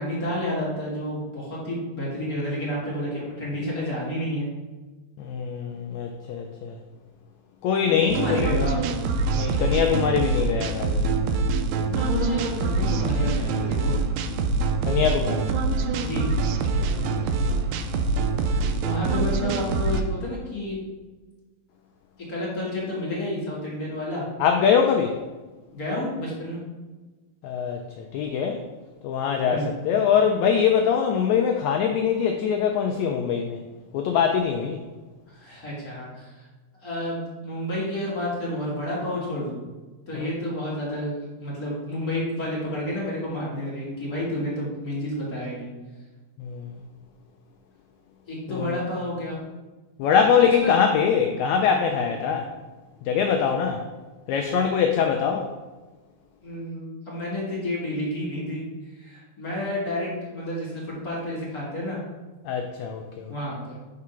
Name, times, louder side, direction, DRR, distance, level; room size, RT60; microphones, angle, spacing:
voice 1, 0.0-4.5 7.9-8.9 11.8-13.9 16.0-16.3 18.4-20.8 22.3-24.2 25.7-26.6 29.5-29.7 35.3-36.4 36.8-39.6 40.1-45.7 48.3-49.4 50.3-50.7 54.7-54.8 56.4-58.6 58.9-62.0 63.3-63.8, left 1 dB, 35° left, -6 dB, 1.6 m, -30 dB
voice 2, 5.2-6.8 7.6-8.6 9.3-11.0 14.9-15.5 16.9-17.3 24.4-25.2 27.4-28.6 29.0-33.6 33.9-34.8 40.1-40.3 46.4-46.8 48.5-48.8 50.0-52.5 53.1-53.8 54.3-55.5 62.5-63.3, left 7 dB, 80° left, 3 dB, 1.7 m, -23 dB
sound 1, 8.1-20.0, right 3 dB, 80° right, 1.7 m, -25 dB
4.9 x 4.8 x 5.6 m, 1.2 s
omnidirectional pair, 3.6 m